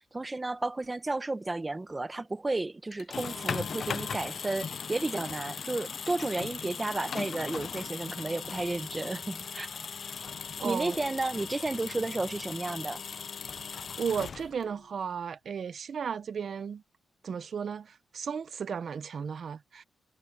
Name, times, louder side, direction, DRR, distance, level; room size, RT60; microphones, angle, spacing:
voice 1, 0.1-9.7 10.6-13.0, right 2 dB, 20° right, 1.0 m, -32 dB
sound 1, 2.9-14.8, left 6 dB, 55° left, 0.6 m, -38 dB
voice 2, 10.6-11.0 14.0-16.8 17.2-19.8, right 6 dB, 60° right, 0.9 m, -34 dB
cardioid pair, 100°, 0 cm